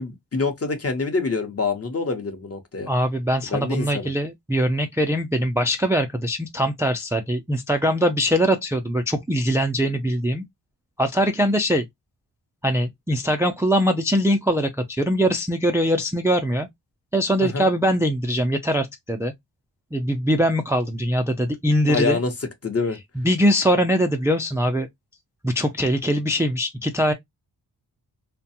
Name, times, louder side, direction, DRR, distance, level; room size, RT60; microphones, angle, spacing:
voice 1, 0.0-2.9 3.5-4.1 17.4-17.7 21.9-22.3 22.6-23.0, left 4 dB, 35° left, 0.8 m, -26 dB
voice 2, 2.9-10.4 11.0-11.8 12.6-16.7 17.1-19.3 19.9-22.2 23.2-24.9 25.4-27.1, equal, 5° right, 0.3 m, -22 dB
2.5 x 2.2 x 2.7 m
cardioid pair, 50°, 42 cm